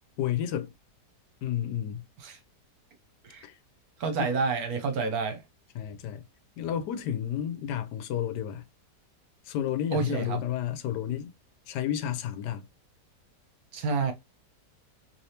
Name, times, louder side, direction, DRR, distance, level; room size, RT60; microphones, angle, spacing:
voice 1, 0.2-0.7 1.4-2.0 3.4-3.5 5.7-6.3 6.6-8.7 9.5-11.3 11.7-12.7, left 10 dB, 90° left, 1.2 m, -31 dB
voice 2, 4.0-5.4 9.9-10.4 13.7-14.1, right 4 dB, 70° right, 1.2 m, -28 dB
3.3 x 2.9 x 2.7 m
omnidirectional pair, 1.8 m